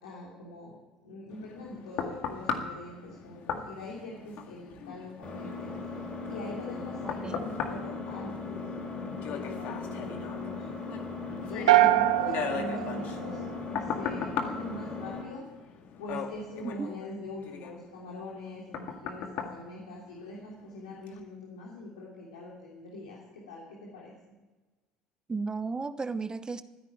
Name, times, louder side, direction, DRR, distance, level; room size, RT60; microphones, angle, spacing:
voice 1, 0.0-0.8 1.0-10.6 11.3-15.4 16.0-24.3, left 1 dB, 85° left, 3.0 m, -43 dB
sound 1, 1.3-20.6 21.1-21.2, left 7 dB, 65° left, 2.0 m, -39 dB
Engine, 5.2-15.2, left 3 dB, 35° left, 6.2 m, -38 dB
voice 2, 7.0-7.4 16.6-16.9 25.3-26.6, right 4 dB, 25° right, 0.8 m, -34 dB
sound 2, 11.7-13.9, right 15 dB, 90° right, 0.7 m, -24 dB
15.5 x 10.5 x 9.0 m
hypercardioid pair, 70°, 3 cm